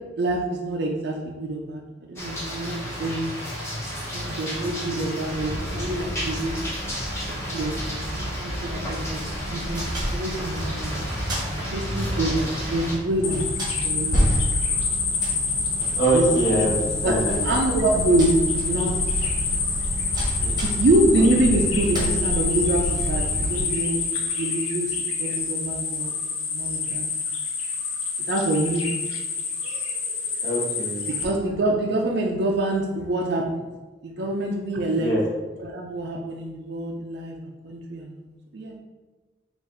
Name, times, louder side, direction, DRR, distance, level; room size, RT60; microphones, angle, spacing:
voice 1, 0.2-1.8 2.1-3.4 4.1-6.5 7.2-9.2 9.5-10.9 11.7-13.5 13.8-14.5 16.1-16.3 16.5-16.6 17.0-17.1 17.4-18.9 20.6-24.0 24.3-26.2 26.5-27.0 28.3-28.8 31.1-33.4 34.0-35.1 35.6-38.2 38.5-38.7, right 1 dB, 55° right, -1 dB, 0.4 m, -26 dB
sound 1, 2.2-13.0, equal, 15° left, 0.8 m, -32 dB
sound 2, 5.2-23.6, equal, 20° right, 0.9 m, -30 dB
sound 3, 13.2-31.2, left 5 dB, 85° left, 0.7 m, -27 dB
voice 2, 16.0-17.4 20.4-20.6 30.4-31.0 35.0-35.2, right 2 dB, 55° left, -5 dB, 1.3 m, -24 dB
4.0 x 2.5 x 3.8 m, 1.2 s
head